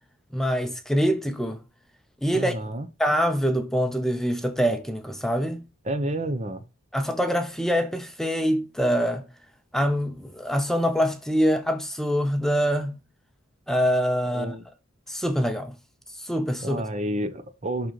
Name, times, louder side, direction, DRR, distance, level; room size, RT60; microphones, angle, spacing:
voice 1, 0.3-1.6 2.2-2.5 3.0-5.6 6.9-9.2 9.7-13.0 13.7-14.5 15.1-15.7 16.2-16.8, equal, ahead, 0.7 m, -24 dB
voice 2, 2.3-2.9 5.8-6.6 14.3-14.6 16.6-17.9, right 1 dB, 30° right, 0.8 m, -30 dB
11.5 x 3.8 x 3.1 m
head